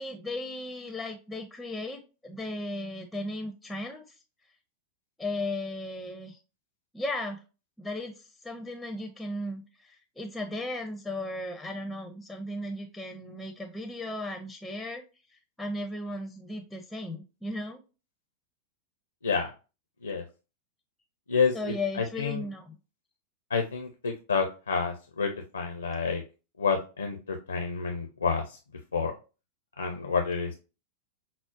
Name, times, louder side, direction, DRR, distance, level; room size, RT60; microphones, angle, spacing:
voice 1, 0.0-4.0 5.2-6.4 6.9-7.4 7.8-15.0 15.3-17.8 21.5-22.7, left 1 dB, 5° left, 4 dB, 0.5 m, -36 dB
voice 2, 21.3-22.4 23.5-26.2 26.6-28.6 28.9-29.1 29.8-30.6, left 5 dB, 75° left, 5 dB, 0.5 m, -29 dB
5.8 x 2.0 x 2.4 m, 0.31 s
figure-of-eight pair, 90°, 0 cm